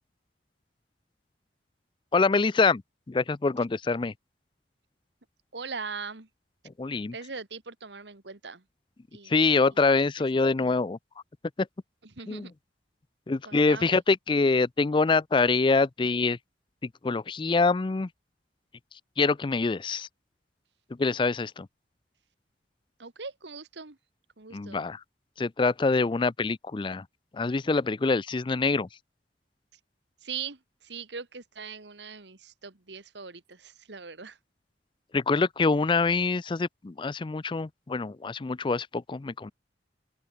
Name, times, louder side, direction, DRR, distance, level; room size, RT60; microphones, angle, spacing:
voice 1, 2.1-2.8 3.1-4.1 6.8-7.1 9.3-11.0 11.6-11.7 12.3-12.5 13.3-16.4 16.8-18.1 19.2-20.1 21.0-21.7 24.5-25.0 25.4-27.1 27.3-28.9 35.1-39.5, left 3 dB, 30° left, 0.4 m, -25 dB
voice 2, 5.5-6.3 7.1-8.6 9.1-9.4 12.0-12.5 13.4-14.0 23.0-24.0 24.4-24.9 30.2-34.4, right 5 dB, 75° right, 1.8 m, -40 dB
open air
head